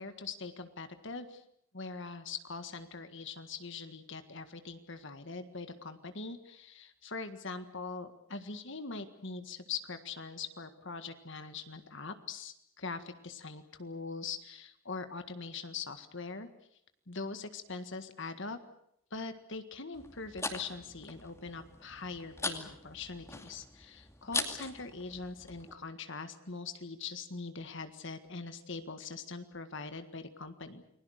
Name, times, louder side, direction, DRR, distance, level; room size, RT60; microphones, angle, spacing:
voice 1, 0.0-1.4 1.7-16.5 17.1-18.6 19.1-30.8, left 4 dB, 60° left, 9 dB, 1.8 m, -42 dB
sound 1, 19.9-25.7, left 3 dB, 15° left, 2.5 m, -41 dB
29.5 x 21.5 x 6.5 m, 0.72 s
head